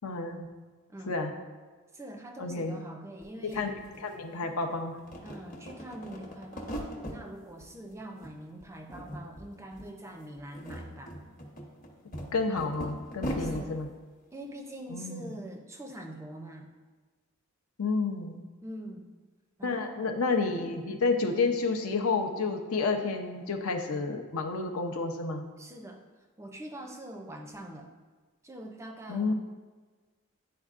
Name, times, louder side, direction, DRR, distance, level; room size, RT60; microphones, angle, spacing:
voice 1, 0.0-0.5 1.1-1.3 2.4-2.8 3.5-3.7 4.0-5.0 12.3-13.9 14.9-15.3 17.8-18.4 19.6-25.4 29.1-29.3, left 4 dB, 80° left, 4 dB, 0.7 m, -30 dB
voice 2, 0.9-1.2 1.9-3.7 5.2-11.2 13.4-13.8 14.3-16.7 18.6-19.1 19.6-20.2 20.6-20.9 25.6-26.0 26.4-27.9 28.4-29.3, right 1 dB, 15° right, 3 dB, 0.4 m, -44 dB
sound 1, 3.2-3.3 3.5-4.6 5.0-7.2 7.6-8.3 8.6-9.5 9.7-9.9 10.4-13.6, equal, 40° left, 0.9 m, -39 dB
10.0 x 4.4 x 2.5 m, 1.4 s
head